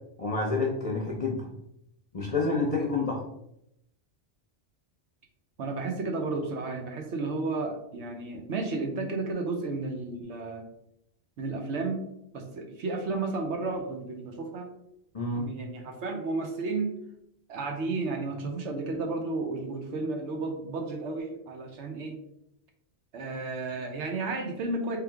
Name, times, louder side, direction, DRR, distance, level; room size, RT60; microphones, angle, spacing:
voice 1, 0.2-1.5 2.1-3.2 15.1-15.5, left 3 dB, 40° left, -1 dB, 0.6 m, -28 dB
voice 2, 5.6-10.6 11.4-12.0 12.3-14.7 15.4-16.9 17.5-22.2 23.1-25.0, right 3 dB, 75° right, 3 dB, 1.0 m, -32 dB
3.3 x 3.1 x 3.5 m, 0.78 s
omnidirectional pair, 1.2 m